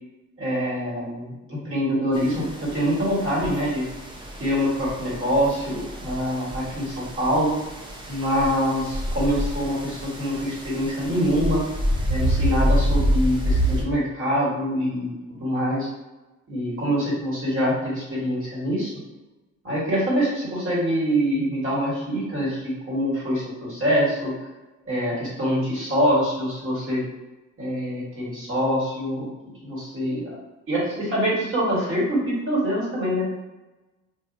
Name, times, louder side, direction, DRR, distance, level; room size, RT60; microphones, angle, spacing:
voice 1, 0.4-3.9 4.4-7.6 8.1-11.6 12.1-15.1 15.4-15.9 16.5-18.9 19.6-24.3 24.8-27.0 27.6-29.3 29.6-30.4 30.7-33.4, equal, 45° right, -6 dB, 1.4 m, -25 dB
sound 1, 2.1-13.8, equal, 15° right, 0.5 m, -27 dB
2.7 x 2.4 x 2.6 m, 1.1 s
cardioid pair, 90°, 30 cm